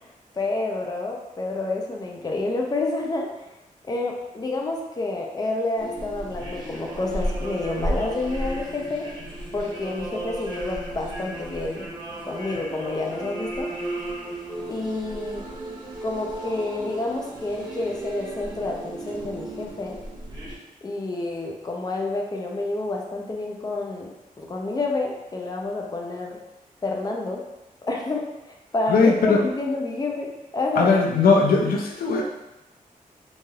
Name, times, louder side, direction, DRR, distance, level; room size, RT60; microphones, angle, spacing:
voice 1, 0.0-3.5 3.8-9.1 9.5-11.9 12.2-13.7 14.7-15.4 16.0-20.0 20.8-24.1 24.4-26.4 26.8-27.4 27.8-30.9, left 2 dB, 25° left, 0 dB, 0.5 m, -29 dB
sound 1, 5.8-20.6, right 1 dB, 30° right, 0.7 m, -34 dB
voice 2, 28.9-29.4 30.8-32.2, left 4 dB, 85° left, 0 dB, 0.4 m, -19 dB
3.2 x 2.6 x 2.3 m, 0.94 s
wide cardioid pair, 105°, 15 cm